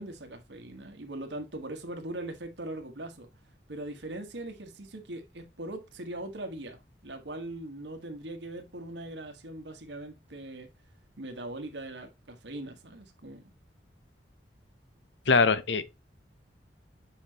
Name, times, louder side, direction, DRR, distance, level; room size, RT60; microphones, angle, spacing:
voice 1, 0.0-3.3 3.7-10.7 11.2-13.5, right 1 dB, 80° right, 1.4 m, -40 dB
voice 2, 15.3-15.8, left 4 dB, 85° left, 0.8 m, -22 dB
7.1 x 5.7 x 2.8 m
head